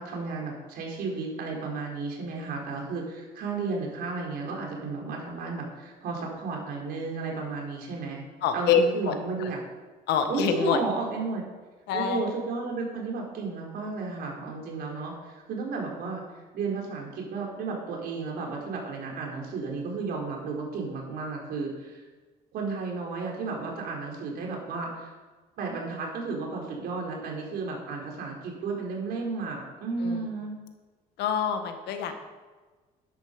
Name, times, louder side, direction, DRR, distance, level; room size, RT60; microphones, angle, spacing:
voice 1, 0.0-8.2 8.5-9.6 10.3-11.4 11.9-16.2 16.5-22.0 22.5-25.1 25.6-30.6, right 4 dB, 70° right, -1 dB, 4.2 m, -33 dB
voice 2, 8.4-9.5 10.1-10.8 11.9-12.3 30.0-30.3 31.2-32.1, left 7 dB, 85° left, 6 dB, 1.7 m, -26 dB
12.5 x 10.5 x 5.3 m, 1.3 s
cardioid pair, 110°, 17 cm